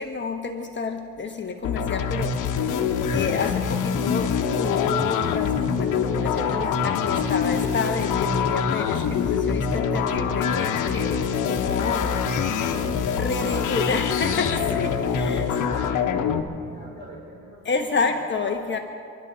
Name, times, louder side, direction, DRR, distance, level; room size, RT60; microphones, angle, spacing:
voice 1, 0.0-2.6 3.1-12.3 13.1-15.4 17.6-18.8, left 4 dB, 40° left, 3 dB, 1.2 m, -29 dB
sound 1, 1.6-16.4, left 6 dB, 85° left, 1.3 m, -24 dB
voice 2, 12.2-16.4 16.7-18.1, right 1 dB, 35° right, -5 dB, 4.9 m, -42 dB
29.5 x 12.0 x 4.1 m, 2.4 s
cardioid pair, 90°, 30 cm